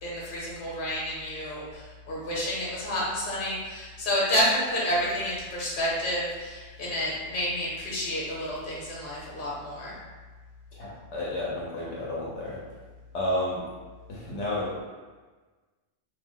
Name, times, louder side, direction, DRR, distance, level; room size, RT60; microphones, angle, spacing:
voice 1, 0.0-9.9, left 1 dB, 50° left, -6 dB, 1.0 m, -29 dB
voice 2, 10.7-12.6 13.1-13.7 14.1-14.8, left 1 dB, 80° left, -5 dB, 0.9 m, -31 dB
2.6 x 2.0 x 3.5 m, 1.4 s
omnidirectional pair, 1.2 m